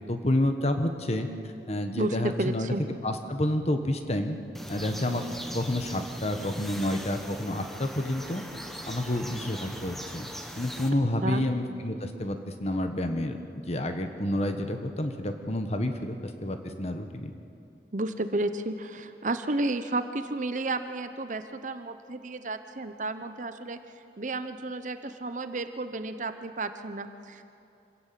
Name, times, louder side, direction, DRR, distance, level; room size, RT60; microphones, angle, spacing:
voice 1, 0.1-1.3 1.7-2.7 3.0-4.4 4.7-5.2 5.5-8.4 8.9-10.3 10.6-13.4 13.7-17.3, left 1 dB, 35° left, 6 dB, 1.3 m, -29 dB
voice 2, 2.0-2.8 11.2-11.4 17.9-23.8 24.2-27.4, right 2 dB, 45° right, 10 dB, 0.9 m, -32 dB
sound 1, 4.5-10.9, equal, ahead, 1.3 m, -40 dB
26.0 x 16.5 x 7.6 m, 2.7 s
head